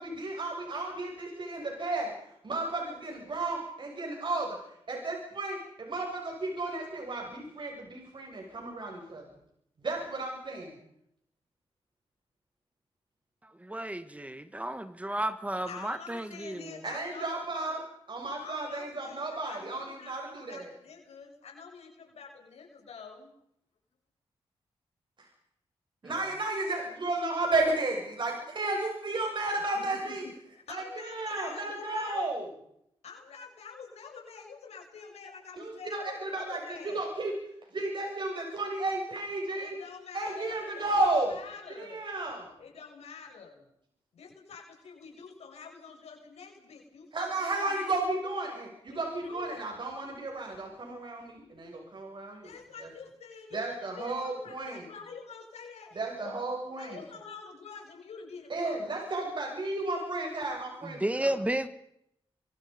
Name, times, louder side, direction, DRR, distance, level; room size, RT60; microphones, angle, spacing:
voice 1, 0.0-2.1 2.4-4.6 4.9-9.2 9.8-10.8 16.8-17.8 18.1-20.7 25.2-25.3 26.0-30.2 30.7-32.5 35.6-37.3 37.7-39.8 40.1-41.3 41.7-42.5 47.1-52.5 52.8-52.9 53.5-54.9 56.0-57.0 58.5-61.3, right 2 dB, 50° right, 1 dB, 7.1 m, -33 dB
voice 2, 13.4-16.8 26.0-26.2 60.8-61.7, right 1 dB, 15° right, 11 dB, 1.9 m, -33 dB
voice 3, 15.6-17.8 18.4-23.3 29.7-32.2 33.0-37.1 39.6-42.0 42.6-43.7 44.1-48.0 48.9-49.6 52.4-56.3 56.8-58.9, left 5 dB, 90° left, 1 dB, 6.8 m, -47 dB
27.5 x 24.0 x 5.4 m, 0.74 s
cardioid pair, 90°, 11 cm